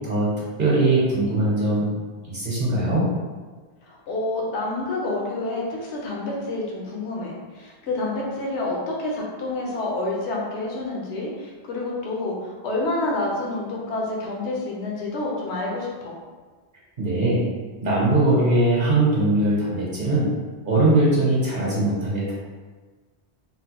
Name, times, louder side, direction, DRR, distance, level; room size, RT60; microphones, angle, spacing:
voice 1, 0.6-1.9 2.2-3.1 17.0-17.4 17.8-20.3 20.6-22.3, right 2 dB, 55° right, -6 dB, 0.9 m, -20 dB
voice 2, 3.8-16.1, left 2 dB, 85° left, -3 dB, 1.0 m, -28 dB
3.8 x 2.1 x 2.9 m, 1.4 s
omnidirectional pair, 1.1 m